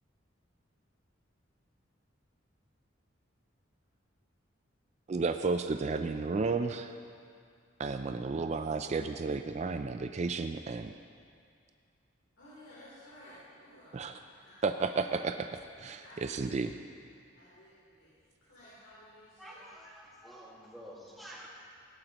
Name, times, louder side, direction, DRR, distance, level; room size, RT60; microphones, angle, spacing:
voice 1, 5.1-6.9 7.8-10.9 13.9-14.1 14.6-16.7, right 4 dB, 35° right, 8 dB, 0.3 m, -32 dB
voice 2, 12.4-13.9 14.2-14.5 14.9-15.0 16.0-16.6 17.3-19.7, left 1 dB, 85° left, -11 dB, 3.4 m, -55 dB
voice 3, 19.4-21.5, equal, ahead, -5 dB, 1.8 m, -49 dB
17.5 x 11.5 x 3.0 m, 2.3 s
head